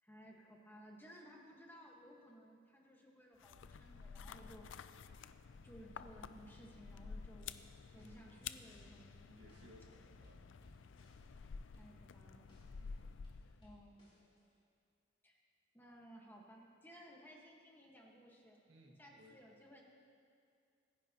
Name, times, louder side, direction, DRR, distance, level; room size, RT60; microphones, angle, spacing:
voice 1, 0.0-5.1 5.6-7.6 7.9-9.4 11.7-12.5 12.8-13.0 13.6-14.0 15.2-15.4 15.7-18.6 19.0-19.8, equal, 10° left, -1 dB, 1.4 m, -58 dB
sound 1, 3.4-13.8, left 5 dB, 90° left, 0.4 m, -52 dB
sound 2, 7.9-8.4 8.7-9.9 10.2-12.9 13.2-14.6, left 1 dB, 30° left, 3.4 m, -66 dB
voice 2, 7.9-8.7 9.3-10.4 12.8-13.2 18.7-19.3, equal, 75° right, 0 dB, 1.8 m, -63 dB
25.5 x 10.5 x 2.9 m, 2.3 s
head